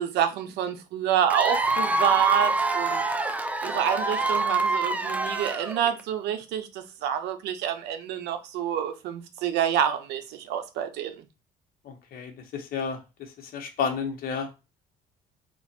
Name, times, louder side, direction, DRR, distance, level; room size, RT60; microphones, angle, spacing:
voice 1, 0.0-3.0 3.6-11.2, right 9 dB, 80° right, 0.6 m, -27 dB
Cheering / Applause / Crowd, 1.3-6.0, right 3 dB, 10° right, 0.3 m, -26 dB
voice 2, 11.8-14.5, left 6 dB, 60° left, 1.0 m, -32 dB
2.9 x 2.4 x 4.2 m
cardioid pair, 110°, 17 cm